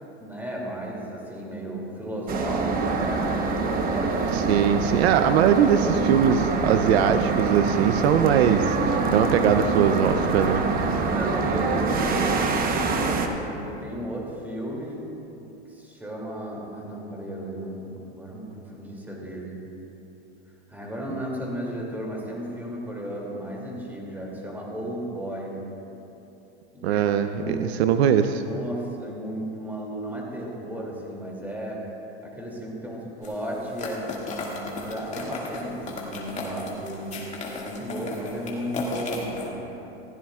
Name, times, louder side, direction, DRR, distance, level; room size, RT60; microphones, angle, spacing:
voice 1, 0.2-4.5 5.0-6.4 10.9-15.1 15.7-19.6 20.7-25.6 26.7-27.0 27.4-27.8 28.4-31.9 32.2-37.1 37.5-39.6, equal, 5° right, -3 dB, 2.6 m, -34 dB
sound 1, 2.3-13.3, right 4 dB, 25° right, 1.0 m, -25 dB
voice 2, 4.3-10.6 26.8-28.4, right 8 dB, 70° right, 9 dB, 0.7 m, -21 dB
sound 2, 33.2-39.5, left 3 dB, 20° left, 2.1 m, -35 dB
18.0 x 15.5 x 2.4 m, 3.0 s
supercardioid pair, 130°, 33 cm